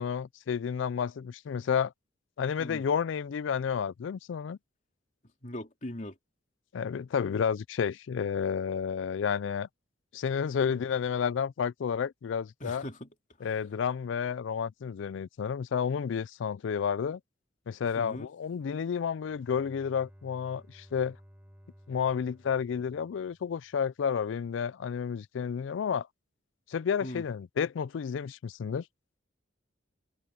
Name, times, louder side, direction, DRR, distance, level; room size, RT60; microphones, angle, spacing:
voice 1, 0.0-1.9 2.4-4.6 6.7-9.7 10.1-12.8 13.4-17.2 17.7-21.2 21.9-26.1 26.7-28.8, left 7 dB, 70° left, 0.4 m, -31 dB
voice 2, 5.4-6.1 10.7-10.8 12.6-13.1 18.0-18.3 27.0-27.2, left 1 dB, 40° left, 3.1 m, -40 dB
Bowed string instrument, 19.0-24.0, equal, 10° right, 7.6 m, -57 dB
head